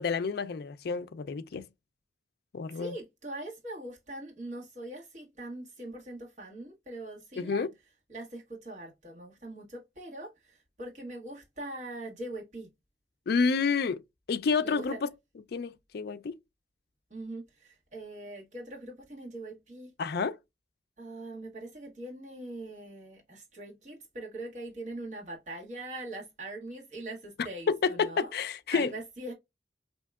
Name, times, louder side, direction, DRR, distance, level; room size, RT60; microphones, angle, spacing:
voice 1, 0.0-1.6 2.5-2.9 7.4-7.7 13.3-14.0 14.3-15.1 15.5-16.3 20.0-20.4 27.7-28.9, left 5 dB, 60° left, 0.4 m, -29 dB
voice 2, 2.7-7.7 8.1-12.7 14.6-15.0 17.1-19.9 21.0-28.3 28.7-29.3, right 1 dB, 45° right, 1.4 m, -42 dB
4.4 x 2.8 x 2.3 m
head